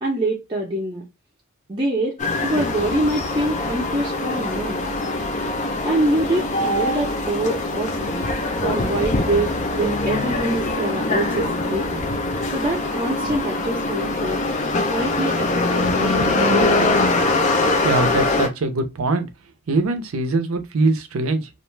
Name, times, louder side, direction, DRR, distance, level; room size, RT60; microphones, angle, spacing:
voice 1, 0.0-1.0 1.7-4.8 5.8-8.3 8.6-12.0 12.5-14.4 14.8-16.9, right 1 dB, 25° right, 0.5 m, -25 dB
sound 1, 2.2-18.5, left 2 dB, 35° left, 0.5 m, -23 dB
voice 2, 17.8-19.3 19.7-21.5, right 2 dB, 80° right, 0.6 m, -22 dB
2.5 x 2.2 x 3.2 m
head